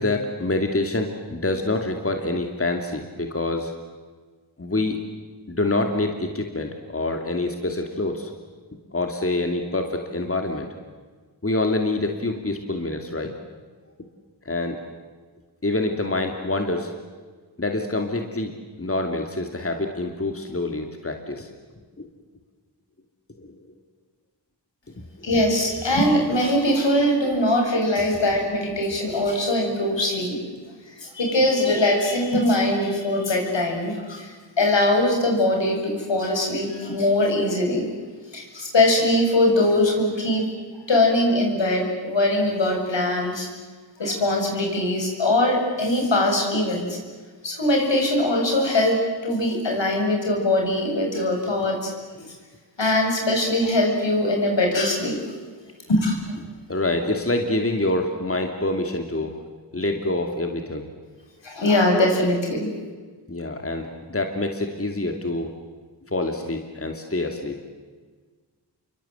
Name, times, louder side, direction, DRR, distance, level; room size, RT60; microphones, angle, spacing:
voice 1, 0.0-3.7 4.6-5.0 5.5-8.3 8.9-10.7 11.4-13.3 14.4-14.8 15.6-16.9 17.6-18.5 18.8-21.5 22.0-22.1 23.4-23.5 52.2-52.3 56.4-59.4 59.7-60.9 63.3-65.5 66.1-67.6, left 2 dB, 30° left, 4 dB, 2.8 m, -26 dB
voice 2, 25.2-30.4 30.9-37.9 38.3-40.5 40.9-43.5 44.0-47.0 47.4-51.9 52.8-55.2 55.9-56.2 61.4-62.7, left 1 dB, 75° left, 1 dB, 7.6 m, -21 dB
29.0 x 24.0 x 8.3 m, 1.4 s
wide cardioid pair, 70°, 44 cm